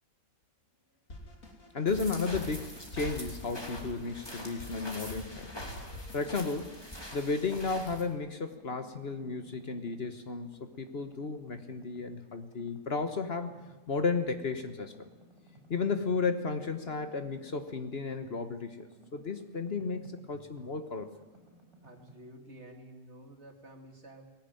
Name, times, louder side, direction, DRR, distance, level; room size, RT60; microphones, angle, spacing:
Drum kit, 1.1-6.4, left 1 dB, 70° left, 3.4 m, -47 dB
voice 1, 1.7-5.5 6.1-6.8 7.1-13.6 13.9-14.9 15.7-21.1, left 4 dB, 50° left, 8 dB, 1.4 m, -33 dB
sound 1, 1.9-8.0, left 1 dB, 15° left, 2.9 m, -44 dB
sound 2, 5.4-6.1 6.5-8.2 8.5-10.3 10.5-12.1 12.5-14.1 14.5-18.5 18.8-22.1, right 1 dB, 20° right, 5.8 m, -59 dB
voice 2, 21.8-24.3, right 1 dB, 50° right, 4 dB, 2.8 m, -51 dB
19.5 x 17.5 x 9.1 m, 1.2 s
omnidirectional pair, 1.5 m